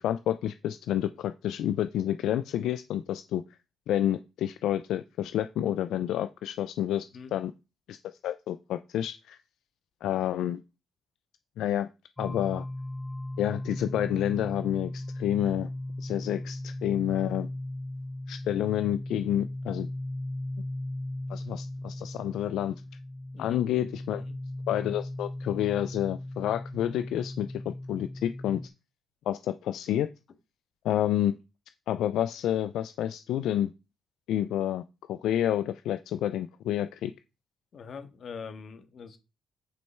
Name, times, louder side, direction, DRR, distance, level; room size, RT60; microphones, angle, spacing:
voice 1, 0.0-3.4 3.9-7.5 7.9-8.0 8.2-9.4 10.0-10.6 11.6-11.9 12.2-12.6 13.4-15.7 16.0-17.5 18.3-19.9 21.3-22.7 23.4-24.2 24.7-28.6 29.3-30.1 30.8-31.4 31.9-33.7 34.3-34.8 35.1-37.1, left 11 dB, 80° left, 0.4 m, -29 dB
sound 1, 12.2-28.7, left 1 dB, 20° left, 0.8 m, -37 dB
voice 2, 37.7-39.2, left 5 dB, 55° left, 1.8 m, -43 dB
9.4 x 5.4 x 4.5 m
cardioid pair, 90°, 0 cm